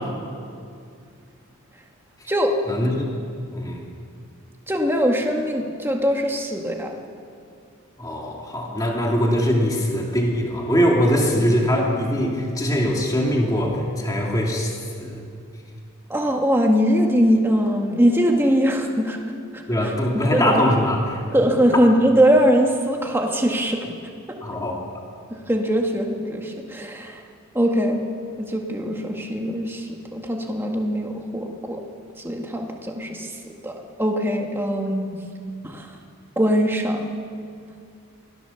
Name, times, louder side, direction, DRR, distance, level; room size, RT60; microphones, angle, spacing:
voice 1, 2.7-3.1 3.5-3.8 8.0-15.2 19.7-21.2 24.4-24.8, equal, 15° left, -1 dB, 2.4 m, -22 dB
voice 2, 4.7-6.9 16.1-19.2 19.5-19.9 20.3-20.6 21.3-23.8 25.5-27.2 27.5-28.0 28.4-29.8 30.1-31.8 32.2-33.3 33.6-33.7 34.0-35.2 35.6-35.9 36.4-37.0, equal, 10° right, 1 dB, 1.8 m, -21 dB
24.0 x 16.5 x 7.1 m, 2.4 s
head